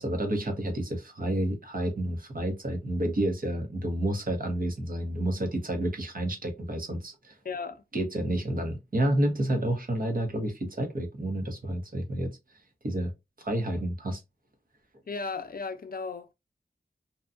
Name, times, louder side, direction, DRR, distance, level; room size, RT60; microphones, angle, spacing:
voice 1, 0.0-7.3 7.9-12.4 12.8-13.1 13.4-14.2, right 1 dB, 55° right, 0.9 m, -30 dB
voice 2, 7.4-7.8 15.1-16.3, left 4 dB, 55° left, 0.4 m, -35 dB
2.8 x 2.3 x 2.4 m
wide cardioid pair, 65°, 18 cm